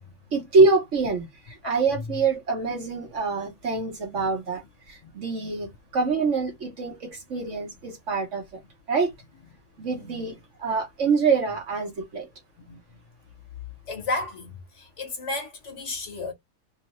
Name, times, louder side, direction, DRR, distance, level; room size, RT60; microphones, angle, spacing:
voice 1, 0.3-4.6 4.9-8.4 8.9-9.1 9.8-12.3, right 4 dB, 55° right, 1.2 m, -25 dB
voice 2, 9.9-10.3 12.7-12.8 13.9-16.3, left 2 dB, 50° left, 1.2 m, -33 dB
3.1 x 2.6 x 2.9 m
omnidirectional pair, 1.7 m